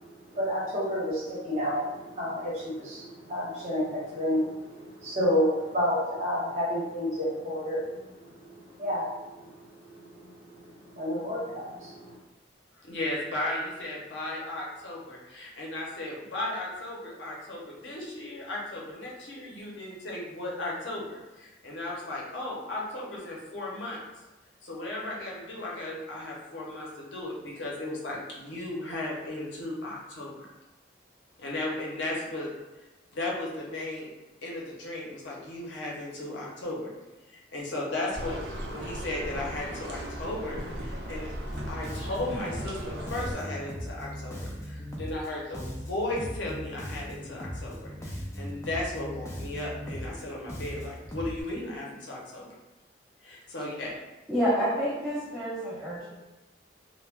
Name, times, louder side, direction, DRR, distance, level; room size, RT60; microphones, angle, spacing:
voice 1, 0.3-8.0 8.4-9.1 10.1-10.3 10.6-12.2, equal, 40° right, -8 dB, 1.0 m, -30 dB
voice 2, 12.8-24.0 24.6-30.3 31.4-32.5 33.1-34.1 34.4-36.9 37.3-38.4 38.7-41.3 41.7-52.5 53.2-53.9, left 1 dB, 75° left, -3 dB, 0.7 m, -35 dB
sound 1, 38.1-43.3, right 1 dB, 60° right, 0.5 m, -37 dB
Bass guitar, 41.5-51.4, equal, 15° left, 0.3 m, -38 dB
voice 3, 54.3-56.1, equal, ahead, -12 dB, 1.0 m, -28 dB
2.2 x 2.1 x 3.3 m, 1.1 s
head